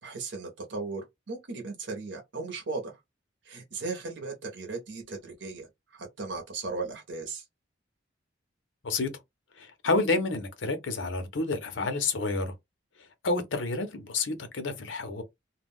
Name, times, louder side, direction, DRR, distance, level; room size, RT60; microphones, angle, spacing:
voice 1, 0.0-3.0 3.4-7.4, right 3 dB, 70° right, 0.8 m, -37 dB
voice 2, 9.6-12.5 13.2-15.2, left 3 dB, 85° left, 0.7 m, -29 dB
2.3 x 2.2 x 3.5 m
head